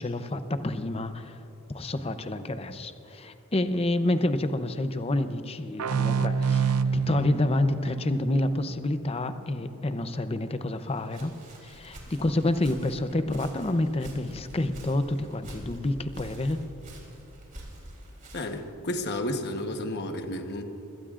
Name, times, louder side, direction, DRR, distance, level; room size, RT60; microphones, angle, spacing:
voice 1, 0.0-1.4 1.7-11.3 11.6-16.6, left 1 dB, 25° left, 10 dB, 0.6 m, -28 dB
sound 1, 5.8-9.2, right 6 dB, 85° right, 0.5 m, -28 dB
Walk footsteps, 10.8-18.7, right 1 dB, 35° right, 3.3 m, -46 dB
voice 2, 18.3-20.6, left 1 dB, 50° left, 5 dB, 1.1 m, -32 dB
25.5 x 17.5 x 2.5 m, 3.0 s
head